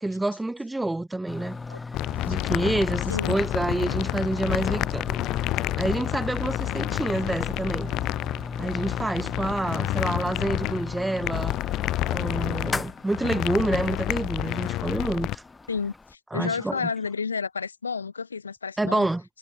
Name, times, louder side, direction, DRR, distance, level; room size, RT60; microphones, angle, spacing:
voice 1, 0.0-1.6 2.3-5.2 5.8-7.9 8.6-11.6 12.1-15.4 16.3-16.9 18.8-19.2, right 2 dB, 5° right, 0.3 m, -28 dB
sound 1, 1.3-16.1, left 3 dB, 10° left, 1.3 m, -38 dB
sound 2, 1.9-15.3, left 16 dB, 35° left, 1.5 m, -29 dB
voice 2, 15.7-19.1, left 5 dB, 75° left, 0.8 m, -31 dB
figure-of-eight pair, 90°, 0 cm